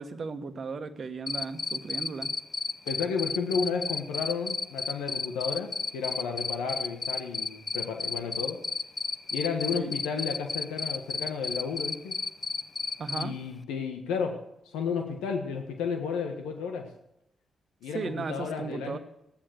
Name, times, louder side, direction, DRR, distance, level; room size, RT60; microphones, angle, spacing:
voice 1, 0.0-2.3 9.7-9.9 13.0-13.4 17.9-19.0, right 4 dB, 55° right, 10 dB, 1.3 m, -36 dB
Cricket, 1.3-13.2, left 4 dB, 45° left, 0.8 m, -31 dB
voice 2, 2.9-8.6 9.3-12.2 13.1-16.9 17.8-19.0, left 5 dB, 85° left, 5 dB, 1.4 m, -32 dB
15.0 x 10.0 x 6.4 m, 0.81 s
hypercardioid pair, 40°, 0 cm